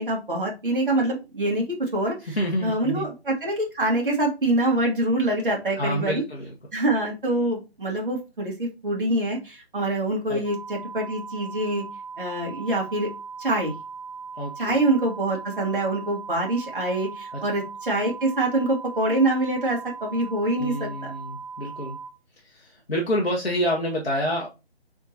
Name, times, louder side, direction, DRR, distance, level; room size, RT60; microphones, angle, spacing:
voice 1, 0.0-6.2 6.7-11.8 12.2-13.1 13.4-13.7 14.6-21.1, right 1 dB, 50° right, -1 dB, 1.3 m, -25 dB
voice 2, 2.3-3.1 5.8-6.5 10.3-10.4 14.4-14.8 17.3-17.4 20.6-22.0 22.4-24.5, equal, 65° left, -2 dB, 1.0 m, -28 dB
sound 1, 10.4-22.1, right 5 dB, 5° left, 1.5 m, -39 dB
3.9 x 3.6 x 2.7 m, 0.27 s
figure-of-eight pair, 160°, 32 cm